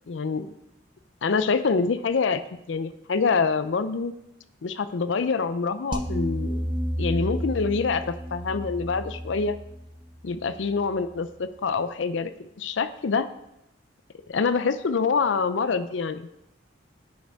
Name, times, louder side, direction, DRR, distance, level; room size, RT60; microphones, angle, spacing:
voice 1, 0.1-0.5 1.2-4.1 4.6-6.6 7.0-9.6 10.2-13.3 14.3-16.3, left 5 dB, 80° left, 12 dB, 0.5 m, -26 dB
sound 1, 5.9-11.1, equal, 25° right, 0.6 m, -32 dB
10.5 x 6.5 x 3.5 m, 0.85 s
head